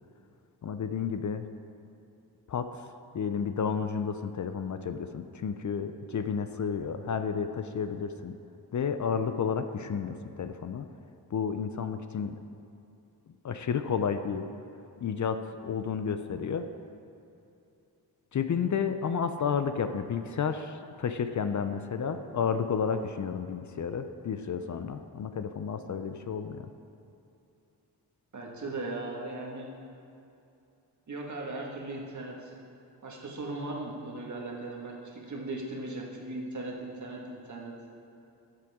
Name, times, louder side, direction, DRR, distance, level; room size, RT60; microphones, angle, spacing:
voice 1, 0.6-1.5 2.5-2.8 3.1-8.3 8.7-10.9 11.3-12.4 13.4-14.5 15.0-16.7 18.3-26.7, left 6 dB, 50° left, 9 dB, 0.5 m, -31 dB
voice 2, 28.3-29.7 31.1-32.5 33.0-37.7, right 2 dB, 45° right, -2 dB, 1.7 m, -38 dB
13.0 x 7.7 x 3.6 m, 2.7 s
wide cardioid pair, 100°, 39 cm